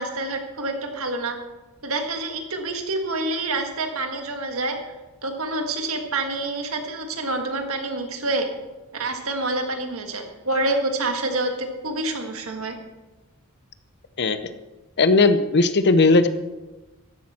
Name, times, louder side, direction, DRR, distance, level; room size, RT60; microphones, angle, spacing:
voice 1, 0.0-1.4 1.8-4.8 5.2-8.5 8.9-12.8, right 2 dB, 70° right, 4 dB, 1.7 m, -27 dB
voice 2, 14.2-14.5 15.0-16.3, left 3 dB, 50° left, 11 dB, 0.8 m, -17 dB
14.0 x 10.5 x 4.3 m, 1.1 s
head